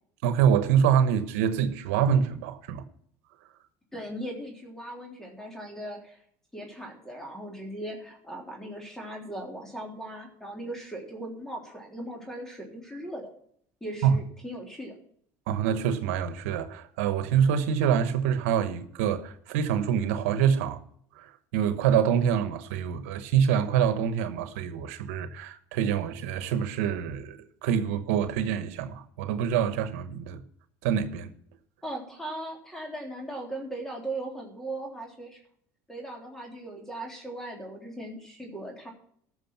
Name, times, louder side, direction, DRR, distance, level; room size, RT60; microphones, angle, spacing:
voice 1, 0.2-2.8 14.0-14.1 15.5-20.8 21.1-30.4 30.8-31.3, right 8 dB, 85° right, 1.1 m, -26 dB
voice 2, 3.9-6.2 6.5-13.3 13.8-15.0 31.8-35.4 35.9-38.9, right 1 dB, 5° left, 3.4 m, -38 dB
14.5 x 6.4 x 5.8 m
supercardioid pair, 100°, 7 cm